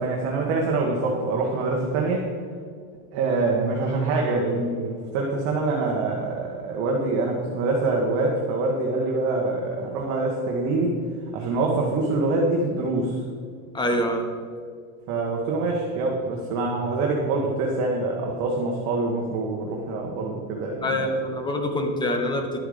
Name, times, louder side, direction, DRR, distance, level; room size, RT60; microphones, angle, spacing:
voice 1, 0.0-2.3 3.1-11.0 11.3-13.2 15.1-21.1, right 3 dB, 40° right, -1 dB, 1.4 m, -25 dB
voice 2, 13.7-14.2 20.8-22.6, left 1 dB, 10° left, 5 dB, 0.8 m, -25 dB
11.0 x 7.8 x 5.1 m, 2.1 s
supercardioid pair, 160°, 44 cm